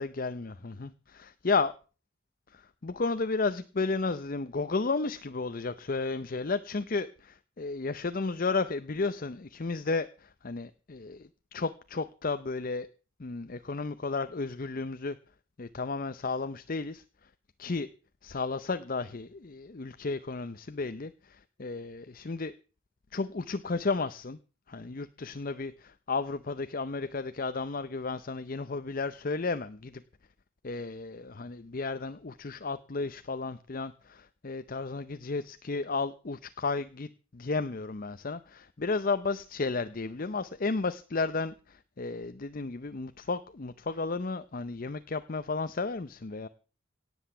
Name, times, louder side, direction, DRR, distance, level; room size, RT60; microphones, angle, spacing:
voice 1, 0.0-1.7 2.5-12.9 13.2-15.2 15.6-17.0 17.6-17.9 18.2-22.5 23.1-24.4 24.7-30.0 30.6-46.5, left 3 dB, 45° left, 11 dB, 0.6 m, -33 dB
17.5 x 8.1 x 6.8 m, 0.37 s
head